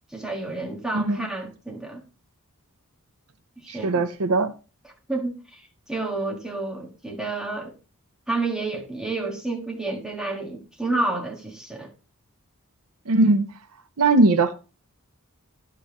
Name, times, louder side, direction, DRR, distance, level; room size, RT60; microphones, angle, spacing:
voice 1, 0.1-2.0 3.6-4.1 5.1-7.7 8.3-11.9, right 2 dB, 5° right, 1.6 m, -30 dB
voice 2, 0.9-1.3 3.7-4.5 13.1-13.4 14.0-14.5, right 2 dB, 75° right, 0.7 m, -20 dB
10.5 x 6.9 x 3.0 m
head